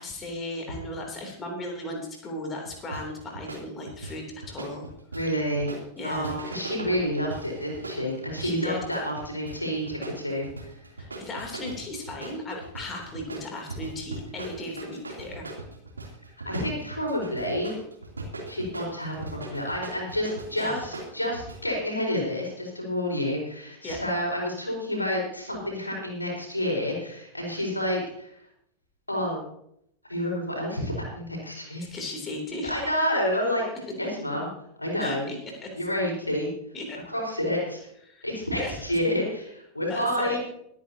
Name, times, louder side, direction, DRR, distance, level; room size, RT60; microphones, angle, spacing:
voice 1, 0.0-4.9 6.0-6.3 8.4-8.8 11.0-15.5 20.6-20.9 23.8-24.0 31.8-32.8 35.0-35.3 35.6-35.7 36.7-37.0 38.0-38.3 38.6-38.8 39.9-40.4, left 1 dB, 20° left, 1 dB, 3.2 m, -36 dB
sound 1, 2.6-21.6, right 2 dB, 80° right, 3.0 m, -39 dB
voice 2, 5.1-5.7 6.0-10.7 16.4-17.8 18.5-28.4 29.1-29.4 30.1-31.9 32.6-33.6 34.0-34.5 34.8-35.3 35.7-36.5 37.1-37.8 38.2-40.4, equal, 85° left, -1 dB, 4.6 m, -29 dB
22.5 x 9.5 x 2.8 m, 0.73 s
figure-of-eight pair, 90°, 0 cm